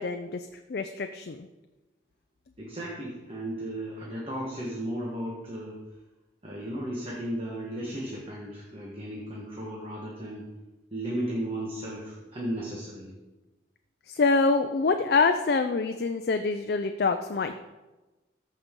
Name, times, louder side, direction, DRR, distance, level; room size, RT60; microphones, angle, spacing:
voice 1, 0.0-1.5 14.1-17.6, left 4 dB, 55° left, 7 dB, 0.4 m, -26 dB
voice 2, 2.6-5.8 6.4-10.5 10.9-13.2, right 1 dB, 30° right, -4 dB, 1.3 m, -35 dB
14.0 x 5.3 x 3.7 m, 1.1 s
head